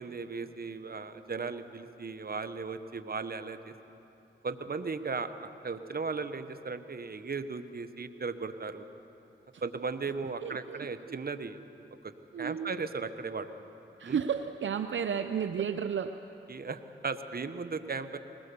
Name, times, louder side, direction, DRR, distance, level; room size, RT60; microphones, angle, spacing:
voice 1, 0.0-3.7 4.4-8.9 9.6-11.6 12.0-13.5 14.0-14.2 16.5-18.2, right 4 dB, 50° right, 10 dB, 1.2 m, -36 dB
voice 2, 10.4-11.2 12.3-12.7 14.0-16.2, right 7 dB, 70° right, 8 dB, 0.7 m, -33 dB
20.5 x 19.5 x 7.0 m, 2.9 s
cardioid pair, 45°, 20 cm